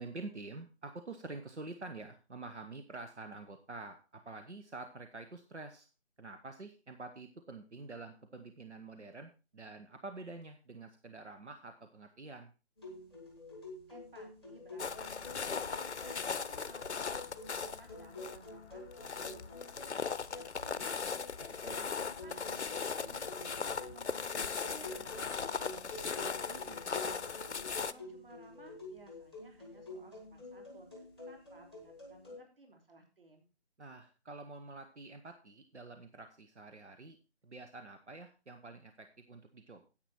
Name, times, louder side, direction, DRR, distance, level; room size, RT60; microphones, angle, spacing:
voice 1, 0.0-5.9 6.2-12.5 21.6-21.8 33.8-37.2 37.4-39.9, right 3 dB, 90° right, 7 dB, 1.3 m, -47 dB
sound 1, 12.8-32.4, left 2 dB, 5° right, 1.1 m, -49 dB
voice 2, 13.9-14.9 15.1-19.4 19.9-21.3 21.7-22.7 22.9-24.3 24.6-25.1 25.4-27.4 27.8-33.5, right 2 dB, 55° right, 3 dB, 3.4 m, -58 dB
sound 2, 14.8-27.9, left 5 dB, 85° left, 0.7 m, -38 dB
10.0 x 8.2 x 4.3 m, 0.31 s
figure-of-eight pair, 165°, 33 cm